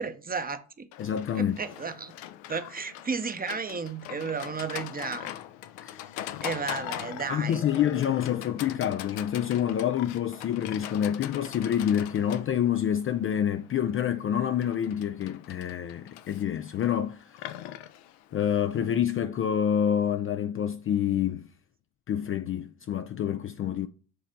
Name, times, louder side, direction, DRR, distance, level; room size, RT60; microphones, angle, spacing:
voice 1, 0.0-0.9 1.3-2.1 2.5-5.4 6.4-7.6, right 5 dB, 20° right, 0.8 m, -33 dB
Livestock farm animals working animals, 0.9-19.0, left 12 dB, 65° left, 0.7 m, -41 dB
voice 2, 1.0-1.6 5.8-6.0 7.3-17.6 18.3-21.5 22.1-23.9, left 9 dB, 30° left, 0.4 m, -27 dB
7.7 x 3.3 x 5.2 m
hypercardioid pair, 60°, 44 cm